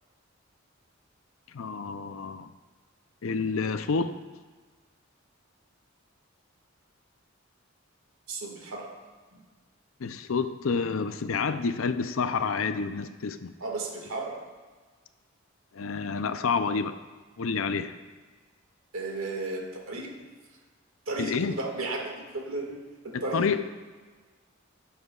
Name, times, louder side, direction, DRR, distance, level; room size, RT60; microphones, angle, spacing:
voice 1, 1.5-2.5 3.2-4.2 10.0-13.5 15.7-17.0 17.4-18.0 21.2-21.6 23.1-23.7, left 5 dB, 80° left, 10 dB, 0.5 m, -29 dB
voice 2, 8.3-8.9 9.3-9.4 13.6-14.4 18.9-20.2 21.1-22.8 23.0-23.5, right 3 dB, 85° right, 0 dB, 2.0 m, -34 dB
18.0 x 7.1 x 2.4 m, 1.4 s
head